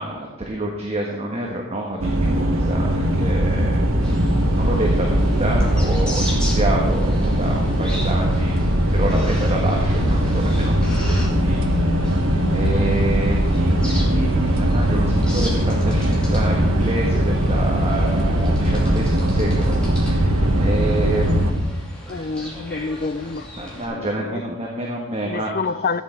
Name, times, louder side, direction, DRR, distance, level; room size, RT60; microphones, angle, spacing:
voice 1, 0.0-4.0 4.5-8.6 8.9-12.1 12.5-21.8 22.3-22.9 23.6-25.5, right 1 dB, 25° right, -1 dB, 1.3 m, -28 dB
sound 1, 2.0-21.5, equal, 65° right, 1.5 m, -20 dB
sound 2, 4.0-23.8, equal, 5° left, 2.7 m, -36 dB
voice 2, 22.1-23.5 23.9-24.4 25.2-26.0, left 4 dB, 40° left, 14 dB, 0.4 m, -27 dB
14.0 x 8.8 x 4.6 m, 1.1 s
head